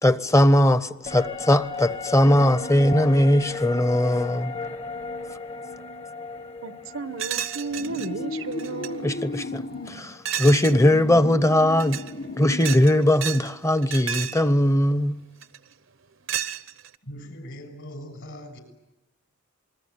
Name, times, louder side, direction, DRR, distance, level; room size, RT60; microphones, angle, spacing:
voice 1, 0.0-4.5 9.0-12.0 12.4-15.2, left 1 dB, 15° left, 0.9 m, -20 dB
sound 1, 1.0-10.6 10.9-11.0, left 4 dB, 30° left, 1.3 m, -36 dB
voice 2, 6.6-9.1, right 3 dB, 80° right, 1.1 m, -33 dB
sound 2, 7.2-8.1 8.5-8.9 10.2-10.8 11.7-12.1 12.5-13.5 13.8-14.4 15.4-15.7 16.3-16.9, right 10 dB, 65° right, 0.9 m, -31 dB
sound 3, 7.7-10.0 10.6-12.8, left 2 dB, 85° left, 4.7 m, -35 dB
voice 3, 17.0-18.6, equal, 65° left, 7.0 m, -40 dB
27.0 x 21.5 x 9.6 m
head